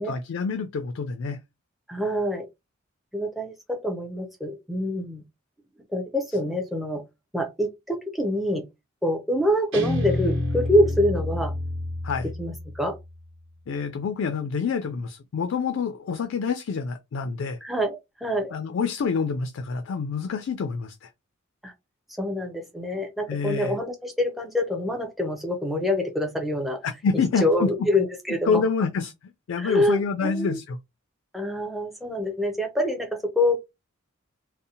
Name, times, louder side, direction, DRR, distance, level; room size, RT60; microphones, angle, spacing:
voice 1, 0.0-1.4 12.0-12.3 13.7-17.6 18.5-21.1 23.3-23.8 26.8-27.7 28.5-29.1 29.5-30.8, left 5 dB, 65° left, 0.3 m, -27 dB
voice 2, 1.9-2.5 3.1-5.2 5.9-7.0 7.3-8.6 9.0-11.5 12.4-13.0 17.6-18.5 21.6-21.7 22.2-26.8 27.4-28.6 29.6-30.6 31.3-33.6, left 1 dB, ahead, 0.4 m, -26 dB
Guitar, 9.7-12.9, left 2 dB, 70° right, 1.3 m, -28 dB
2.6 x 2.0 x 2.7 m
head